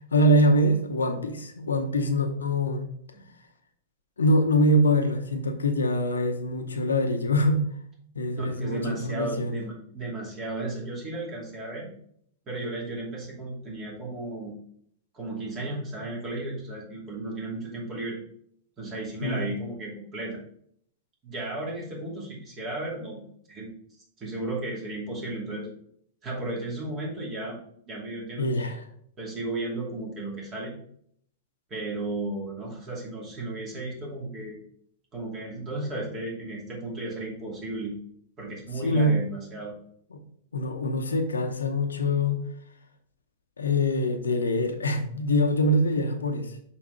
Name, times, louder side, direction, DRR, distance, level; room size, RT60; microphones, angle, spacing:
voice 1, 0.1-2.8 4.2-7.6 8.1-9.6 19.2-19.4 28.4-28.9 38.8-39.1 40.1-40.2 40.5-42.4 43.6-46.6, equal, 85° left, 5 dB, 0.7 m, -24 dB
voice 2, 8.3-11.9 12.5-14.5 15.1-18.2 18.8-20.4 21.2-23.7 24.2-25.7 26.2-27.6 27.9-28.7 29.2-30.7 31.7-34.6 35.1-37.9 38.4-39.7, right 2 dB, 30° right, -3 dB, 2.6 m, -34 dB
5.8 x 4.1 x 5.0 m, 0.67 s
hypercardioid pair, 105°, 0 cm